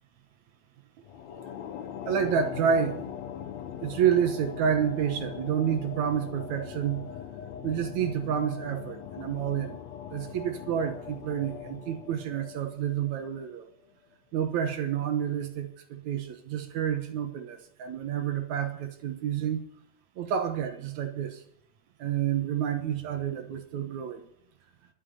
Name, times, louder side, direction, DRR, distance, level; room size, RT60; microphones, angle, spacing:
sound 1, 1.0-13.6, left 9 dB, 70° left, 2.0 m, -41 dB
voice 1, 2.0-3.1 3.8-7.1 7.6-9.8 10.1-13.7 14.3-19.6 20.2-21.4 22.0-24.3, right 8 dB, 70° right, 7 dB, 2.3 m, -29 dB
12.0 x 7.6 x 9.9 m, 0.71 s
omnidirectional pair, 3.7 m